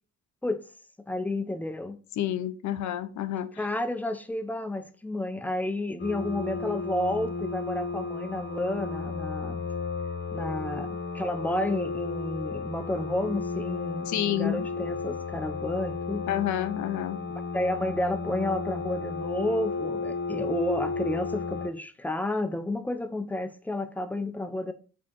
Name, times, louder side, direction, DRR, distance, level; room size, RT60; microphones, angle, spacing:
voice 1, 1.1-2.0 3.6-9.6 10.3-16.2 17.5-24.7, left 1 dB, 5° left, 0.4 m, -31 dB
voice 2, 2.2-3.7 14.1-14.7 16.3-17.2, left 11 dB, 70° left, 0.6 m, -29 dB
sound 1, 6.0-21.7, left 4 dB, 40° left, 0.9 m, -33 dB
4.3 x 3.6 x 2.9 m
cardioid pair, 90°, 30 cm